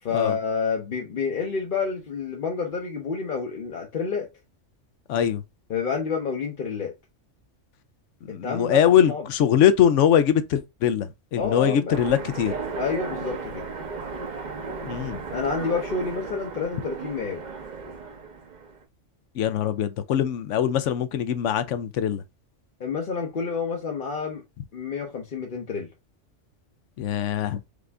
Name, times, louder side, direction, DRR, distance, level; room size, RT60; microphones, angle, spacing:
voice 1, 0.0-4.3 5.7-6.9 8.3-9.2 11.4-12.0 12.8-13.7 15.3-17.4 22.8-24.4 24.7-25.9, left 5 dB, 50° left, 0.8 m, -29 dB
voice 2, 5.1-5.4 8.2-12.5 14.8-15.2 19.4-22.2 27.0-27.6, left 9 dB, 80° left, 1.0 m, -22 dB
Train, 11.9-18.8, right 4 dB, 45° right, 0.8 m, -35 dB
5.0 x 2.5 x 3.3 m
omnidirectional pair, 1.2 m